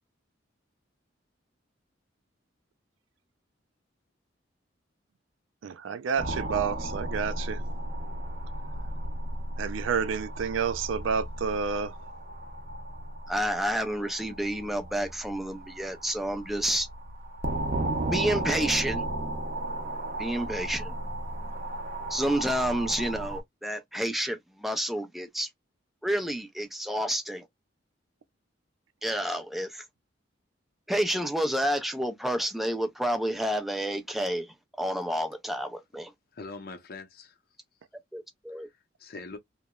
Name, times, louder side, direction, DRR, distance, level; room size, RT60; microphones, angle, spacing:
voice 1, 5.6-7.6 9.6-12.0, right 6 dB, 90° right, 0.4 m, -29 dB
sound 1, 6.2-23.4, right 1 dB, 45° right, 0.6 m, -35 dB
voice 2, 13.3-16.9 18.1-19.0 20.2-21.0 22.1-25.5 26.0-27.5 29.0-29.8 30.9-36.1 38.1-38.7, equal, ahead, 0.4 m, -29 dB
voice 3, 36.3-37.4 38.5-39.4, left 3 dB, 50° left, 0.6 m, -43 dB
2.8 x 2.0 x 2.3 m
head